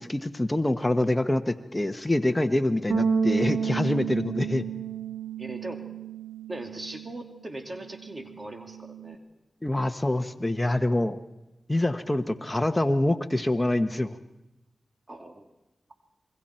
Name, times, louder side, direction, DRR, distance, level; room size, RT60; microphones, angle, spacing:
voice 1, 0.0-4.7 9.6-11.2 11.7-14.1, left 1 dB, 20° left, 7 dB, 1.2 m, -25 dB
Bass guitar, 2.9-9.1, right 6 dB, 85° right, 0.8 m, -31 dB
voice 2, 5.4-5.8 6.5-9.2 15.1-15.5, right 1 dB, 35° right, 4 dB, 2.4 m, -39 dB
27.5 x 22.0 x 4.5 m, 0.98 s
cardioid pair, 45°, 0 cm